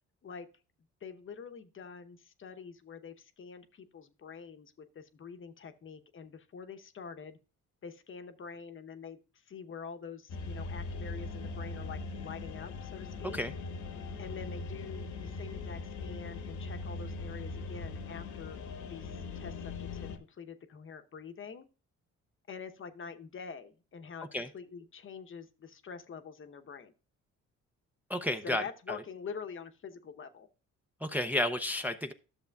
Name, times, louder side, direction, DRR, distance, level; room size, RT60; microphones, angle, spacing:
voice 1, 1.0-7.4 7.8-13.4 14.2-18.6 18.9-21.7 22.5-24.3 24.5-26.9 28.4-30.5, left 6 dB, 40° left, 8 dB, 0.9 m, -46 dB
sound 1, 10.3-20.2, left 3 dB, 80° left, 1.2 m, -40 dB
voice 2, 28.1-29.0 31.0-32.1, left 1 dB, 5° right, 5 dB, 0.5 m, -32 dB
11.5 x 6.9 x 2.3 m, 0.34 s
cardioid pair, 90°, 30 cm